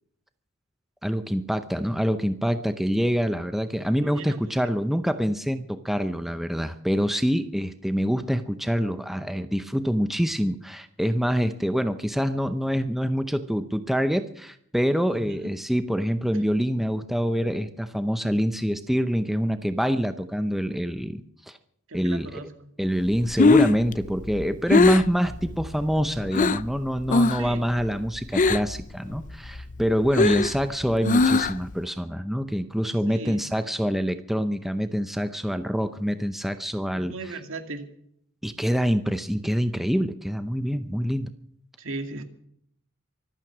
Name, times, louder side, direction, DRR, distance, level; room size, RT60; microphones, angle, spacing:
voice 1, 1.0-21.6 21.9-22.4 22.8-37.3 38.4-41.3, equal, ahead, 10 dB, 0.7 m, -26 dB
voice 2, 3.9-4.5 15.1-15.5 21.9-22.7 27.4-27.7 33.1-33.5 36.9-37.8 41.8-42.2, right 2 dB, 65° right, 6 dB, 2.4 m, -37 dB
Breathing, 23.1-26.7 27.1-27.5 27.8-28.8 29.2-31.7, left 3 dB, 35° left, 0.6 m, -21 dB
24.5 x 9.0 x 6.1 m, 0.68 s
head